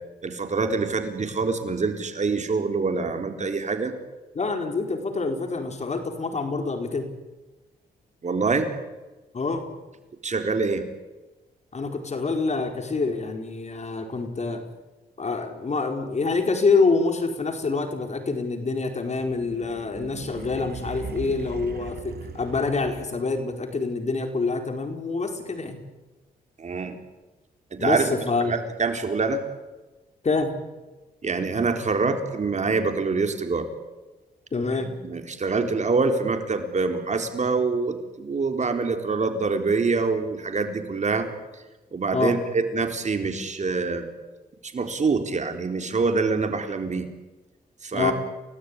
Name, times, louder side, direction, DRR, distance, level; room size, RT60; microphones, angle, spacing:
voice 1, 0.2-3.9 8.2-8.7 10.2-10.8 26.6-27.0 27.7-28.1 28.5-29.4 31.2-33.7 34.8-41.3 41.5-41.6 41.9-44.1 44.6-47.1 47.8-48.1, right 4 dB, 45° right, 6 dB, 4.1 m, -25 dB
voice 2, 4.3-7.1 9.3-9.6 11.7-14.6 15.2-25.8 27.8-28.5 30.2-30.5 34.5-34.9 42.1-42.4 47.9-48.1, left 4 dB, 45° left, 5 dB, 4.7 m, -26 dB
sound 1, 19.2-23.4, right 7 dB, 75° right, 2.1 m, -39 dB
29.5 x 18.5 x 9.9 m, 1.1 s
cardioid pair, 85°, 17 cm